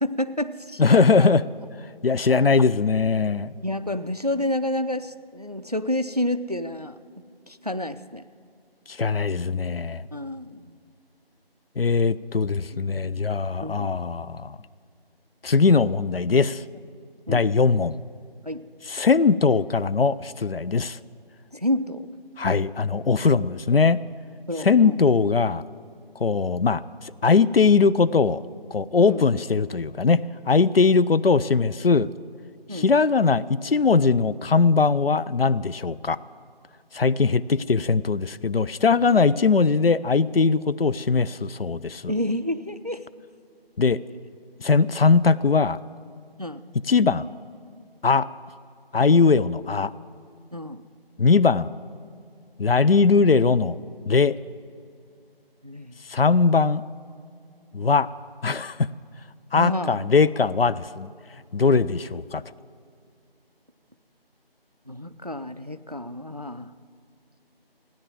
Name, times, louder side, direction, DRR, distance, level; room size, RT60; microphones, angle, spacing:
voice 1, 0.0-1.3 2.3-2.5 3.6-7.0 7.5-8.2 10.1-10.7 12.7-13.2 13.6-13.9 17.3-17.5 18.5-18.6 21.5-22.1 24.5-25.0 29.1-29.3 32.7-32.9 42.1-43.1 46.4-46.6 50.5-50.8 55.6-56.0 59.5-60.0 64.9-66.7, left 1 dB, 40° right, 12 dB, 0.4 m, -29 dB
voice 2, 0.8-1.5 2.0-3.5 8.9-10.0 11.8-14.6 15.4-16.6 17.3-18.0 18.9-21.0 22.4-24.0 24.6-25.6 26.2-26.8 27.2-28.4 28.7-32.1 32.7-36.2 36.9-42.1 43.8-44.0 44.6-45.8 46.9-47.3 48.0-48.3 48.9-49.9 51.2-51.7 52.6-53.8 54.1-54.4 56.1-56.8 57.7-58.1 58.4-58.9 59.5-61.1 61.5-62.4, left 4 dB, 70° left, 18 dB, 0.5 m, -20 dB
16.5 x 10.0 x 7.6 m, 2.3 s
figure-of-eight pair, 175°, 30 cm